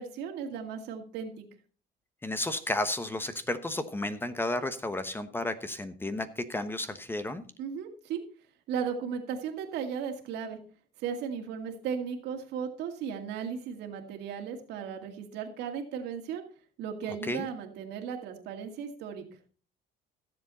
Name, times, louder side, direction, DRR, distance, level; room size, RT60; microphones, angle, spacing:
voice 1, 0.0-1.4 7.6-8.2 8.7-10.6 11.0-16.4 16.8-19.2, right 7 dB, 85° right, 5 dB, 2.3 m, -36 dB
voice 2, 2.2-7.4 17.2-17.5, left 1 dB, 15° left, 11 dB, 1.1 m, -32 dB
15.5 x 7.5 x 4.2 m, 0.40 s
cardioid pair, 110°, 17 cm